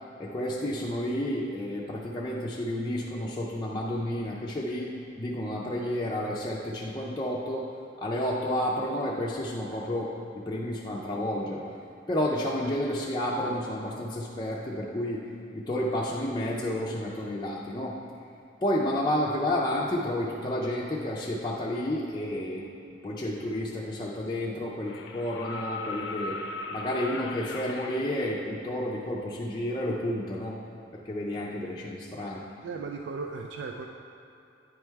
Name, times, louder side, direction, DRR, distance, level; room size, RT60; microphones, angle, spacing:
voice 1, 0.2-4.9 5.2-7.7 8.0-11.6 12.1-15.2 15.5-18.0 18.6-22.7 23.0-26.4 26.7-30.6 30.9-32.4, left 1 dB, 25° left, -5 dB, 0.4 m, -31 dB
sound 1, 24.8-28.0 29.8-29.9, left 3 dB, 80° left, 0.5 m, -37 dB
voice 2, 32.6-33.9, right 4 dB, 80° right, 3 dB, 0.3 m, -36 dB
9.7 x 3.3 x 4.5 m, 2.7 s
head